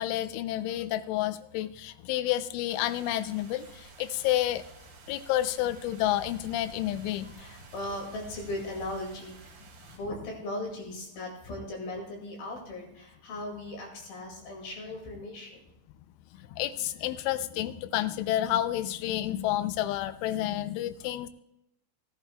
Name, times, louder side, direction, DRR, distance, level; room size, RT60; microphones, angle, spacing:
voice 1, 0.0-4.6 5.1-7.4 16.4-21.3, left 13 dB, 90° left, 12 dB, 3.1 m, -30 dB
sound 1, 2.7-10.0, right 4 dB, 65° right, 4.1 m, -50 dB
voice 2, 7.2-9.6 9.9-15.6, left 1 dB, 55° left, 0 dB, 3.8 m, -38 dB
19.0 x 11.0 x 2.3 m, 0.84 s
omnidirectional pair, 5.4 m